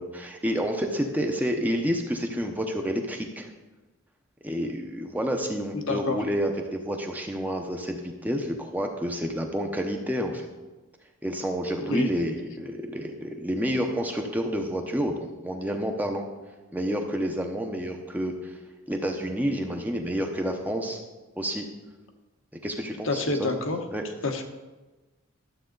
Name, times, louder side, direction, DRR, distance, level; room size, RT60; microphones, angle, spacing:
voice 1, 0.0-3.5 4.4-10.5 11.2-16.2 16.7-18.6 18.9-21.0 21.4-21.6 22.6-23.6 23.9-24.0, equal, 10° right, 3 dB, 0.7 m, -29 dB
voice 2, 5.7-6.2 11.8-12.1 23.0-23.8 24.2-24.4, left 3 dB, 65° left, 4 dB, 1.0 m, -28 dB
12.0 x 7.5 x 3.9 m, 1.2 s
head